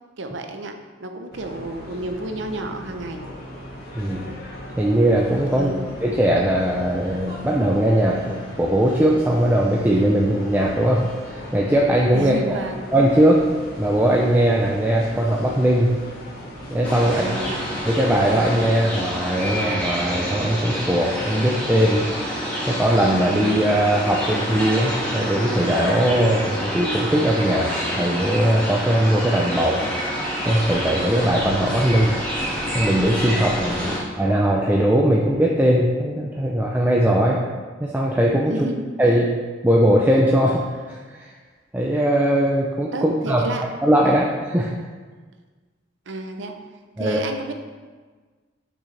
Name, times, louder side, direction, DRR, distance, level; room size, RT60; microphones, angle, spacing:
voice 1, 0.2-0.7 1.0-3.2 5.5-5.8 12.1-12.9 17.0-17.6 33.8-34.0 38.5-39.2 42.9-43.6 44.0-44.1 46.1-46.5 47.0-47.5, right 2 dB, 70° right, 5 dB, 0.7 m, -31 dB
sound 1, 1.3-18.7, equal, 55° left, 1.4 m, -38 dB
voice 2, 3.9-4.3 4.8-5.7 6.0-12.6 12.9-13.4 13.8-15.9 16.7-17.3 17.9-22.0 22.7-29.8 30.4-32.1 32.7-37.4 37.8-38.7 39.0-39.3 39.6-41.3 41.7-43.4 43.8-44.7 47.0-47.2, right 1 dB, 10° right, -3 dB, 0.5 m, -20 dB
sound 2, 16.8-34.0, equal, 5° left, 2.0 m, -27 dB
6.4 x 6.2 x 3.3 m, 1.4 s
head